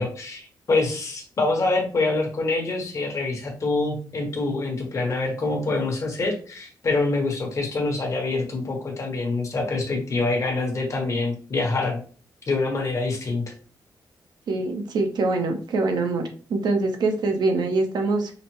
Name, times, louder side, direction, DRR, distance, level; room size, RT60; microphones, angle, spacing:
voice 1, 0.0-12.0 12.5-13.4, left 3 dB, 45° left, 1 dB, 1.2 m, -25 dB
voice 2, 14.5-18.3, right 3 dB, 70° right, 4 dB, 0.8 m, -24 dB
5.0 x 2.1 x 3.1 m, 0.39 s
wide cardioid pair, 125°, 8 cm